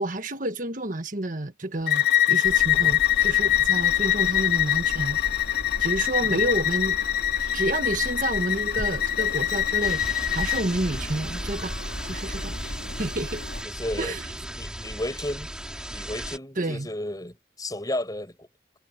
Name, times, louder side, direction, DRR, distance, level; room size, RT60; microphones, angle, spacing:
voice 1, 0.0-5.2 5.8-7.0 7.5-10.0 10.3-11.8 12.0-12.5 12.9-13.4 14.0-14.2 16.6-16.9, right 2 dB, 40° right, 1.5 m, -29 dB
Bowed string instrument, 1.9-10.7, left 12 dB, 55° left, 2.3 m, -23 dB
sound 1, 2.4-13.6, left 1 dB, 85° left, 2.9 m, -37 dB
sound 2, 9.8-16.4, right 1 dB, 5° right, 2.9 m, -36 dB
voice 2, 13.6-14.2 14.5-15.5 15.9-18.5, left 1 dB, 20° left, 6.4 m, -33 dB
head